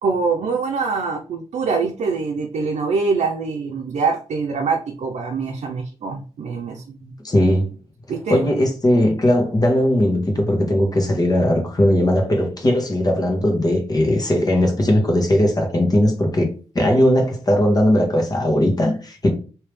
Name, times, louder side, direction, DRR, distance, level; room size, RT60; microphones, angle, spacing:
voice 1, 0.0-7.2 8.1-8.5, right 4 dB, 75° right, 0.5 m, -24 dB
voice 2, 7.2-7.8 8.3-16.5 16.7-19.3, left 1 dB, 35° left, 1.2 m, -18 dB
3.1 x 2.8 x 3.3 m
cardioid pair, 75°, 12 cm